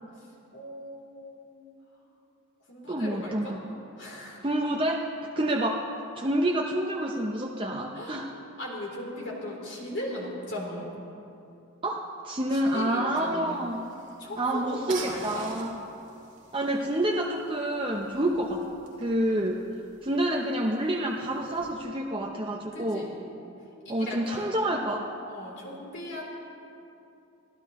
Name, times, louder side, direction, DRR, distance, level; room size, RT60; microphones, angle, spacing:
voice 1, 0.2-1.7 2.0-2.1 2.7-3.6 4.0-4.4 7.9-8.2 8.6-11.0 12.5-13.6 14.2-15.5 18.1-18.4 22.7-23.3 23.8-24.6 25.3-26.2, left 1 dB, 55° left, -3 dB, 3.5 m, -38 dB
voice 2, 2.9-3.6 4.4-5.1 5.4-5.9 6.2-8.3 11.8-13.8 14.4-15.7 16.5-18.6 19.0-19.6 20.0-23.1 23.9-25.0, right 1 dB, 25° right, -1 dB, 0.7 m, -28 dB
sound 1, 13.5-21.7, right 5 dB, 55° right, 2.4 m, -48 dB
24.5 x 16.0 x 3.1 m, 2.7 s
head